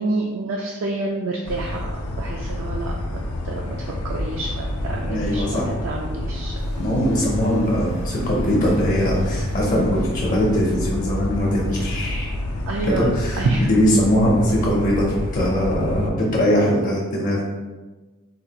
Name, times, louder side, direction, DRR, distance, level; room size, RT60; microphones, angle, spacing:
voice 1, 0.0-3.2 3.4-6.5 12.7-13.7, right 2 dB, 60° right, 0 dB, 0.3 m, -28 dB
sound 1, 1.4-16.1, left 1 dB, 90° left, 0.5 m, -28 dB
voice 2, 5.1-5.7 6.8-12.3 12.9-17.4, equal, 40° left, -3 dB, 0.5 m, -21 dB
sound 2, 6.6-13.1, equal, 80° right, 1.4 m, -39 dB
4.1 x 2.3 x 2.8 m, 1.2 s
head